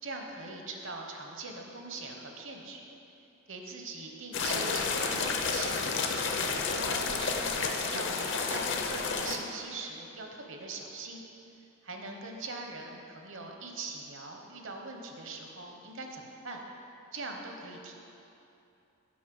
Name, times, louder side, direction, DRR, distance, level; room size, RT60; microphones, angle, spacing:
voice 1, 0.0-2.9 3.5-5.8 6.2-11.2 11.8-16.6 17.1-18.0, right 3 dB, 60° right, 2 dB, 1.1 m, -42 dB
sound 1, 4.3-9.4, left 4 dB, 55° left, 0.7 m, -31 dB
8.4 x 5.6 x 7.7 m, 2.8 s
head